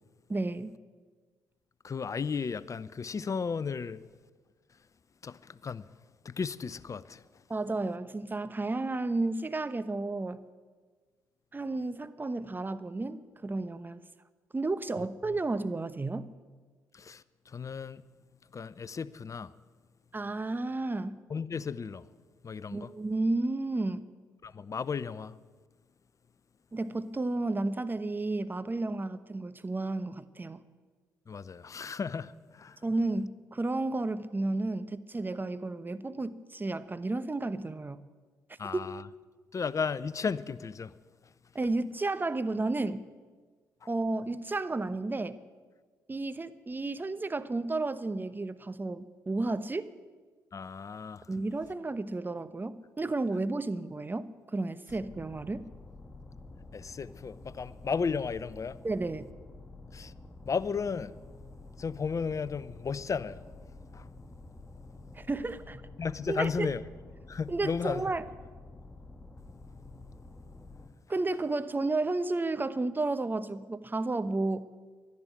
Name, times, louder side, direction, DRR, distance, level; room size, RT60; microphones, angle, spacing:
voice 1, 0.3-0.8 7.5-10.4 11.5-14.0 14.5-16.3 20.1-21.2 22.7-24.1 26.7-30.6 32.8-38.0 38.7-38.8 41.5-43.0 43.9-45.4 46.1-49.9 51.3-55.7 58.8-59.3 65.1-65.8 66.3-66.7 67.5-68.2 71.1-74.7, right 2 dB, 25° right, 1.0 m, -32 dB
voice 2, 1.8-4.1 5.2-5.9 6.2-7.2 15.0-15.1 16.9-18.0 18.5-19.5 21.3-22.1 22.4-22.9 24.4-25.4 31.3-32.8 38.6-39.1 39.5-40.9 50.5-51.3 56.7-58.8 59.9-60.1 60.5-61.2 61.8-63.4 63.9-64.1 66.0-66.8 67.3-68.1, left 5 dB, 40° left, 0.7 m, -34 dB
sound 1, 54.9-70.9, left 2 dB, 15° left, 2.1 m, -49 dB
12.0 x 11.0 x 9.1 m
hypercardioid pair, 45°, 8 cm